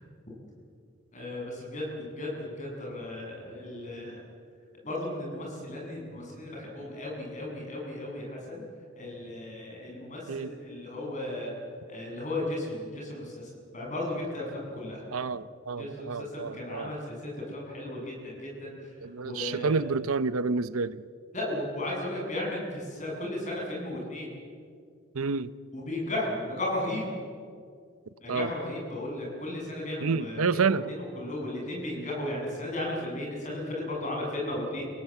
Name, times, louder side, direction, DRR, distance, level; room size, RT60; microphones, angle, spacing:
voice 1, 1.1-1.9 2.2-4.2 4.8-8.6 9.0-11.5 11.9-15.0 15.8-18.7 19.2-19.8 21.3-24.3 25.7-27.0 28.2-34.8, left 1 dB, 35° left, -2 dB, 7.8 m, -35 dB
voice 2, 15.1-16.9 19.0-21.0 25.1-25.5 28.3-28.5 30.0-30.9, right 4 dB, 90° right, 16 dB, 0.7 m, -29 dB
29.5 x 17.5 x 8.1 m, 2.2 s
head